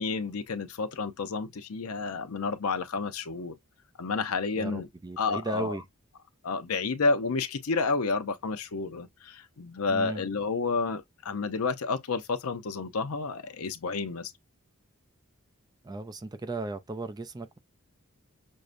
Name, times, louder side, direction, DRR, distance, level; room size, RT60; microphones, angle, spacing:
voice 1, 0.0-3.6 4.0-4.9 5.2-5.8 6.4-14.3, left 4 dB, 85° left, 0.6 m, -30 dB
voice 2, 4.5-5.8 9.9-10.2 15.8-17.6, right 2 dB, 20° right, 0.4 m, -35 dB
6.3 x 2.1 x 2.5 m
head